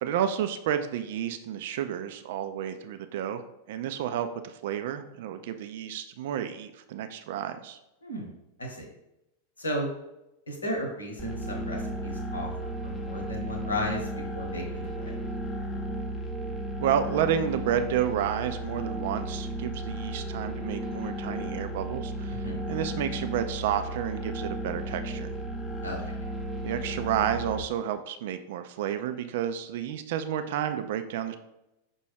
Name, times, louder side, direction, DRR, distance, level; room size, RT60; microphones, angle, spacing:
voice 1, 0.0-3.4 3.7-7.8 16.8-25.3 26.6-31.4, right 9 dB, 55° right, 9 dB, 0.3 m, -31 dB
voice 2, 8.0-8.3 8.6-8.9 9.6-9.9 10.5-12.5 12.8-14.1 14.3-15.1 22.3-22.6 25.8-26.0, left 1 dB, 75° left, 1 dB, 1.0 m, -34 dB
sound 1, 11.2-27.6, right 1 dB, 10° left, 0.6 m, -34 dB
5.7 x 2.2 x 3.2 m, 0.89 s
figure-of-eight pair, 90°, 0 cm